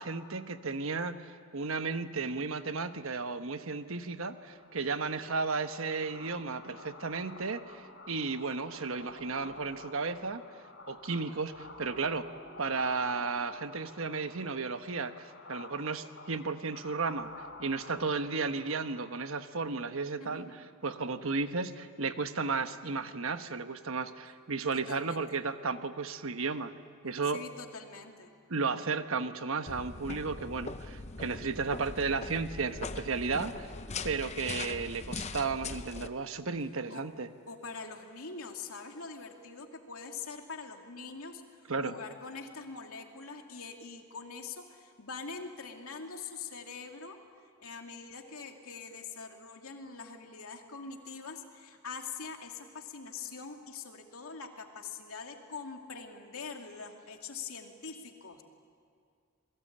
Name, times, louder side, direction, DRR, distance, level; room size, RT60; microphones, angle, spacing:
voice 1, 0.0-10.4 10.9-12.3 12.6-17.3 17.6-20.5 20.8-26.7 27.0-27.4 28.5-33.7 34.0-37.3 41.7-41.9, right 4 dB, 70° right, 9 dB, 1.1 m, -34 dB
sound 1, 4.1-19.5, left 2 dB, 55° left, 4.8 m, -50 dB
voice 2, 20.2-20.5 24.7-25.2 27.3-28.3 36.9-37.1 37.5-47.2 47.6-58.4, left 5 dB, 75° left, 3 dB, 2.6 m, -44 dB
sound 2, 29.7-36.1, left 3 dB, 30° left, 0.7 m, -41 dB
28.5 x 21.5 x 8.7 m, 2.3 s
head